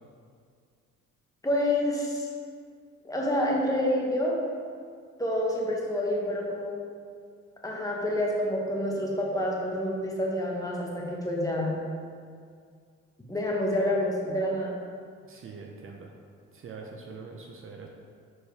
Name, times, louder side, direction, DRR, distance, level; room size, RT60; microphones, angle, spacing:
voice 1, 1.4-2.3 3.0-4.4 5.2-6.8 7.6-11.7 13.3-14.8, left 1 dB, 10° left, -3 dB, 1.2 m, -28 dB
voice 2, 15.3-16.1 16.5-17.9, right 4 dB, 45° right, 1 dB, 0.7 m, -43 dB
6.4 x 4.5 x 3.4 m, 2.1 s
cardioid pair, 90°, 30 cm